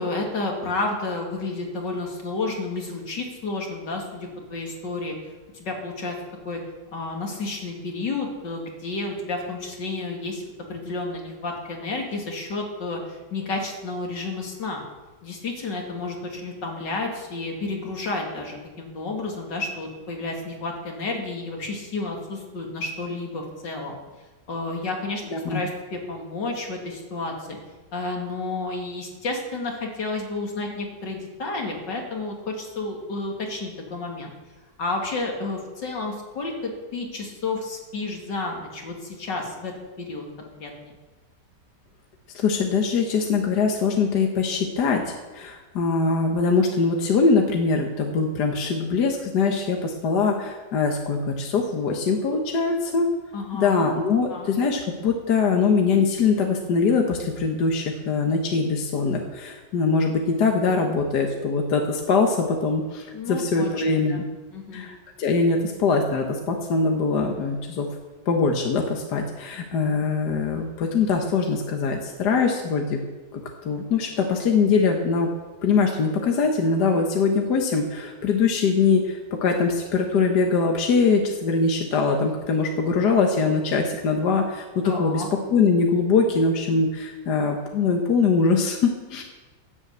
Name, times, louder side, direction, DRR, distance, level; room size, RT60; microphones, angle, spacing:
voice 1, 0.0-5.1 5.5-6.1 6.4-6.6 6.9-10.4 10.7-14.8 15.2-23.9 24.5-25.2 25.5-27.6 27.9-34.3 34.8-40.9 53.3-53.9 54.3-54.5 63.1-64.2 64.5-64.9 84.8-85.3, left 3 dB, 90° left, 0 dB, 3.1 m, -31 dB
voice 2, 42.4-53.1 53.5-64.2 64.7-67.9 68.3-73.0 73.3-75.3 75.6-85.2 85.5-89.2, left 4 dB, 70° left, 2 dB, 1.8 m, -22 dB
11.0 x 10.5 x 8.2 m, 1.2 s
omnidirectional pair, 1.9 m